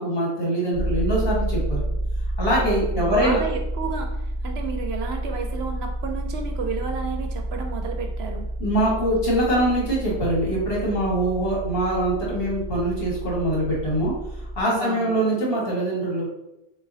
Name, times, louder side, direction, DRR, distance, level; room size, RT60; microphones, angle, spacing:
voice 1, 0.0-1.8 2.4-3.4 8.6-16.3, right 1 dB, 50° left, -6 dB, 1.9 m, -23 dB
sound 1, 0.7-14.6, right 1 dB, 85° left, 1.1 m, -30 dB
voice 2, 2.6-4.1 4.4-8.5 14.7-15.2, right 5 dB, 65° right, 4 dB, 0.8 m, -32 dB
7.1 x 2.5 x 2.7 m, 0.90 s
omnidirectional pair, 1.2 m